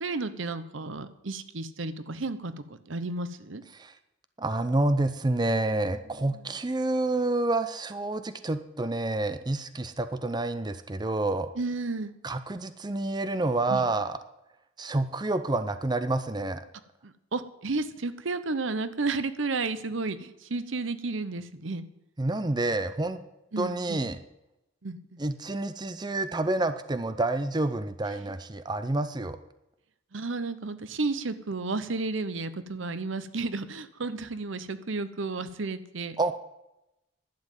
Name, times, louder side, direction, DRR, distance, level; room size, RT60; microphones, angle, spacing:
voice 1, 0.0-3.6 6.3-6.4 11.6-12.1 13.7-13.8 17.0-21.8 23.5-24.1 24.8-25.2 30.1-36.2, right 3 dB, 75° right, 13 dB, 0.9 m, -32 dB
voice 2, 4.4-11.5 12.2-14.2 14.8-16.6 22.2-23.2 23.6-24.2 25.2-29.4 36.2-36.3, right 2 dB, 20° right, 11 dB, 0.6 m, -28 dB
11.5 x 7.6 x 9.1 m, 0.89 s
head